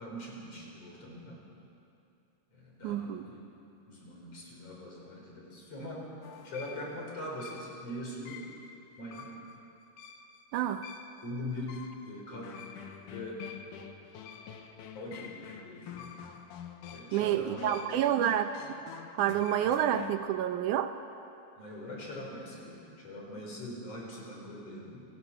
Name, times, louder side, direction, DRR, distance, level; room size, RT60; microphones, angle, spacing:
voice 1, 0.0-1.4 2.5-3.6 3.9-6.1 6.4-8.4 9.0-9.3 11.2-11.8 12.1-12.6 13.1-13.4 14.9-16.1 16.9-17.7 21.6-25.0, left 1 dB, 50° left, -2 dB, 5.4 m, -42 dB
voice 2, 2.8-3.3 10.5-10.9 17.1-18.8 19.1-21.0, right 10 dB, 75° right, 9 dB, 2.1 m, -29 dB
sound 1, 6.2-20.1, left 8 dB, 80° left, 2.6 m, -47 dB
28.5 x 19.0 x 5.9 m, 2.7 s
omnidirectional pair, 3.7 m